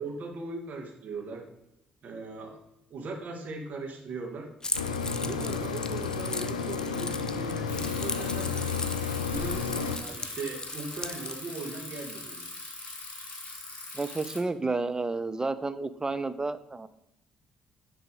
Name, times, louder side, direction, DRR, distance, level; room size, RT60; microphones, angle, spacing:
voice 1, 0.0-1.5 2.0-2.6 2.9-4.5 5.2-8.7 9.2-12.5, right 3 dB, 50° right, 2 dB, 1.6 m, -39 dB
Keys jangling, 4.6-11.4, left 3 dB, 20° left, 0.6 m, -37 dB
sound 1, 4.7-10.0, left 6 dB, 85° left, 0.4 m, -32 dB
Bicycle, 7.7-14.4, left 2 dB, 35° left, 2.6 m, -41 dB
voice 2, 13.9-16.9, right 3 dB, 20° right, 12 dB, 0.5 m, -31 dB
9.5 x 3.4 x 5.2 m, 0.84 s
figure-of-eight pair, 45°, 4 cm